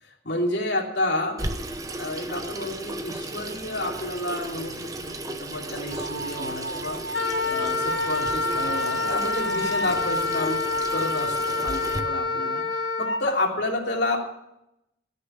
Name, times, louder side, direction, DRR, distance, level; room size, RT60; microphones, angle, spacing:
voice 1, 0.2-1.4 2.0-4.8 5.0-7.0 7.4-12.6 13.0-14.2, left 1 dB, 55° left, 0 dB, 3.2 m, -30 dB
Water tap faucet / Sink (filling or washing), 1.4-12.0, right 2 dB, 15° right, 0.9 m, -35 dB
sound 1, 5.7-11.6, right 3 dB, 80° right, 3.2 m, -37 dB
Wind instrument woodwind instrument, 7.1-13.2, left 3 dB, 75° left, 1.7 m, -27 dB
17.0 x 6.8 x 9.4 m, 0.82 s
head